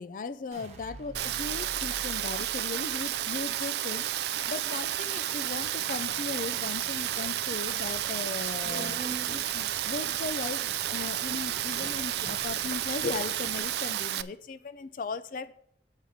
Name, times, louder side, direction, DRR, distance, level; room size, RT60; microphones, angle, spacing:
voice 1, 0.0-4.0 4.5-9.0 9.3-15.5, left 4 dB, 50° left, 14 dB, 0.4 m, -37 dB
sound 1, 0.5-6.7 7.1-7.7, equal, 40° right, 1.1 m, -49 dB
Rain, 1.1-14.2, right 12 dB, 65° right, 0.3 m, -31 dB
Subway metro underground, 5.5-13.6, right 2 dB, 15° right, 1.1 m, -47 dB
7.4 x 4.9 x 7.0 m, 0.68 s
head